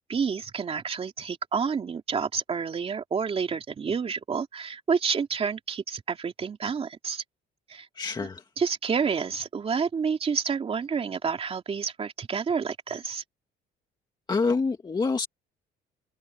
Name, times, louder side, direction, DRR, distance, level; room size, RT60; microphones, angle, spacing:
voice 1, 0.1-7.2 7.7-7.9 8.2-8.3 8.6-13.2, right 6 dB, 35° right, 2.7 m, -29 dB
voice 2, 8.0-8.4 14.3-15.3, left 4 dB, 25° left, 1.9 m, -26 dB
cardioid pair, 110°, 17 cm